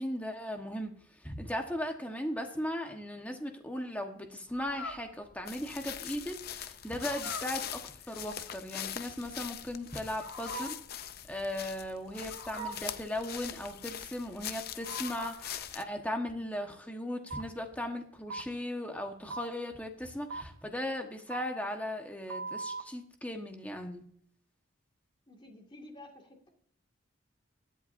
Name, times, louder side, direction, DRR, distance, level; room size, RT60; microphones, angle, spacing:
voice 1, 0.0-7.8 8.1-10.8 11.3-24.0, left 1 dB, 5° left, 3 dB, 1.3 m, -37 dB
Fowl, 4.5-15.6, left 1 dB, 85° left, 6.0 m, -45 dB
sound 1, 5.5-15.8, left 10 dB, 50° left, 0.6 m, -42 dB
sound 2, 17.3-17.4 18.3-18.4 19.3-19.4 20.3-20.4 21.3-21.4 22.3-22.8, right 3 dB, 75° right, 0.8 m, -38 dB
voice 2, 25.3-26.5, left 1 dB, 25° left, 2 dB, 2.1 m, -51 dB
21.0 x 8.1 x 2.7 m, 0.65 s
head